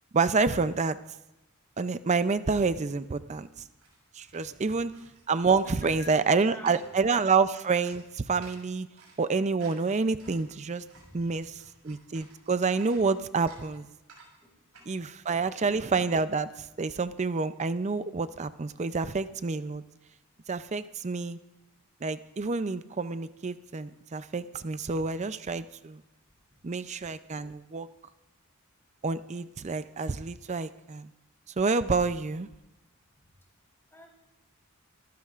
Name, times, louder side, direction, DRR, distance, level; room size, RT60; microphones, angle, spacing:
voice 1, 0.1-1.0 1.8-3.5 4.2-4.9 5.3-8.9 9.2-10.8 11.1-11.5 11.8-13.9 14.9-16.5 16.8-19.8 20.5-21.4 22.0-26.0 26.6-27.9 29.0-31.1 31.6-32.5, right 4 dB, 30° right, 13 dB, 0.5 m, -28 dB
sound 1, 3.0-16.6, right 3 dB, 85° right, 6.6 m, -57 dB
voice 2, 5.6-6.9 10.9-11.7 14.4-14.9 15.3-15.6 33.9-34.1, left 1 dB, 10° left, -2 dB, 3.2 m, -50 dB
25.5 x 15.0 x 2.5 m, 0.97 s
head